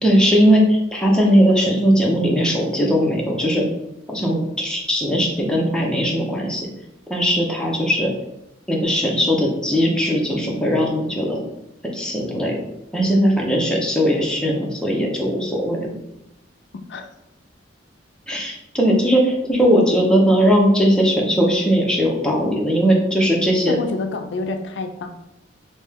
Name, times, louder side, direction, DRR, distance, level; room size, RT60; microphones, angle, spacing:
voice 1, 0.0-3.6 4.1-6.7 7.1-8.1 8.7-11.4 11.9-12.5 12.9-15.9 18.3-23.8, equal, 5° left, -2 dB, 0.6 m, -19 dB
voice 2, 23.7-25.1, left 3 dB, 65° left, 6 dB, 0.4 m, -27 dB
3.2 x 2.7 x 3.4 m, 0.86 s
head